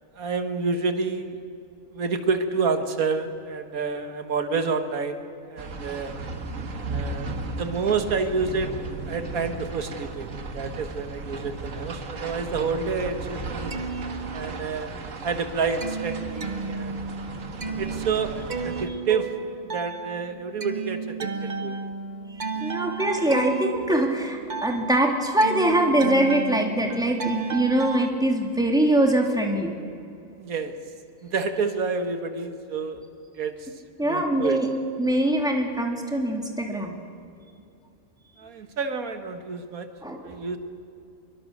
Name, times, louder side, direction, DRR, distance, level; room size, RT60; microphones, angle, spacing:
voice 1, 0.2-1.4 1.9-5.2 5.5-6.1 6.9-13.7 14.3-14.9 15.2-17.0 17.8-19.3 19.6-21.8 22.5-23.0 30.4-30.7 31.2-33.1 33.3-33.7 34.0-34.6 38.4-39.9 40.2-40.6, right 4 dB, 85° right, 8 dB, 1.8 m, -29 dB
sound 1, 5.6-18.9, right 3 dB, 65° right, 1.9 m, -35 dB
sound 2, 13.5-14.9 15.3-28.1, right 5 dB, 40° right, 0.9 m, -33 dB
voice 2, 22.6-29.7 34.0-34.7 35.0-37.0 40.0-40.3, right 1 dB, 5° right, 1 dB, 2.4 m, -23 dB
24.0 x 23.0 x 6.6 m, 2.7 s
omnidirectional pair, 1.5 m